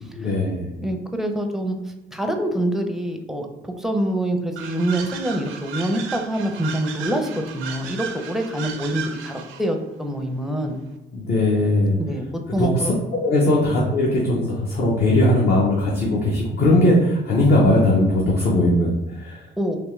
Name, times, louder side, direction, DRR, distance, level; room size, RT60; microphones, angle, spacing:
voice 1, 0.0-0.9 11.1-12.0 12.6-12.9 13.1-19.4, left 1 dB, 55° left, -4 dB, 0.8 m, -19 dB
voice 2, 0.8-1.8 2.1-10.8 12.0-12.3 12.5-12.9 13.5-13.6 19.6-19.8, right 1 dB, ahead, 4 dB, 0.5 m, -25 dB
sound 1, 4.6-9.7, right 7 dB, 85° right, 0.5 m, -35 dB
3.5 x 2.9 x 3.1 m, 1.0 s
cardioid pair, 90°, 20 cm